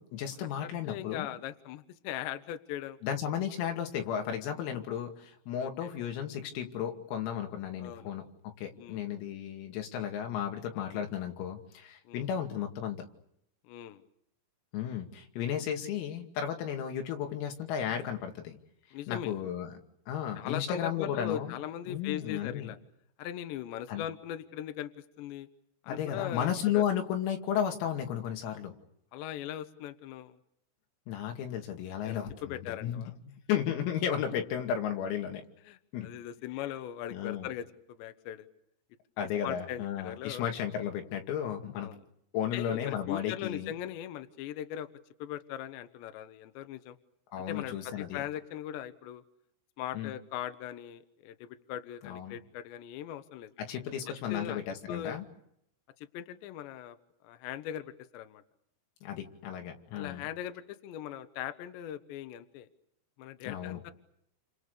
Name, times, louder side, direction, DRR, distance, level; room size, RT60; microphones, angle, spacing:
voice 1, 0.0-1.3 3.0-13.1 14.7-18.6 19.1-19.8 20.1-21.6 21.9-22.7 23.9-24.1 25.9-28.8 31.1-35.4 35.9-36.1 37.1-37.5 39.2-41.9 42.3-43.7 47.3-48.2 49.9-50.1 52.0-52.4 53.6-55.3 59.0-60.3 63.5-63.8, left 9 dB, 85° left, 4 dB, 5.2 m, -34 dB
voice 2, 0.6-3.0 5.6-5.9 7.8-8.2 8.8-9.0 10.7-11.0 12.1-12.3 13.7-14.0 18.9-19.3 20.4-22.8 23.2-24.9 25.2-25.5 25.8-26.8 29.1-30.4 32.0-33.2 35.7-38.5 39.4-40.5 41.8-42.0 42.5-44.9 45.2-47.0 47.5-49.2 49.8-53.5 54.1-54.6 54.9-55.2 56.1-57.0 57.2-58.4 59.9-62.7 63.2-63.9, left 11 dB, 70° left, 9 dB, 3.1 m, -40 dB
29.5 x 26.5 x 6.8 m, 0.75 s
omnidirectional pair, 6.0 m